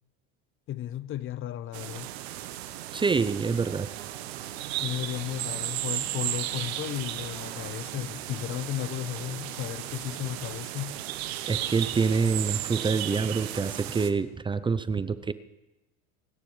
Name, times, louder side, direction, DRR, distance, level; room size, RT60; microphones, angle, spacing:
voice 1, 0.7-2.1 4.8-11.0, left 12 dB, 40° left, 0.6 m, -34 dB
sound 1, 1.7-14.1, right 13 dB, 85° right, 1.1 m, -35 dB
voice 2, 2.9-3.9 11.5-15.3, right 5 dB, 15° right, 0.5 m, -26 dB
28.5 x 10.0 x 3.2 m
supercardioid pair, 95°, 31 cm